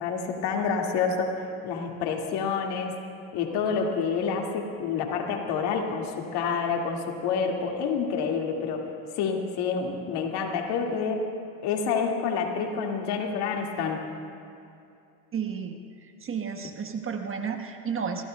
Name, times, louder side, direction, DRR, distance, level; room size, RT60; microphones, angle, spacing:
voice 1, 0.0-2.9 3.3-8.9 9.2-11.3 11.6-14.0, left 5 dB, 60° left, 2 dB, 2.1 m, -28 dB
voice 2, 15.3-15.8 16.2-18.2, right 6 dB, 30° right, 5 dB, 1.2 m, -32 dB
27.5 x 16.5 x 2.3 m, 2.5 s
hypercardioid pair, 85°, 45 cm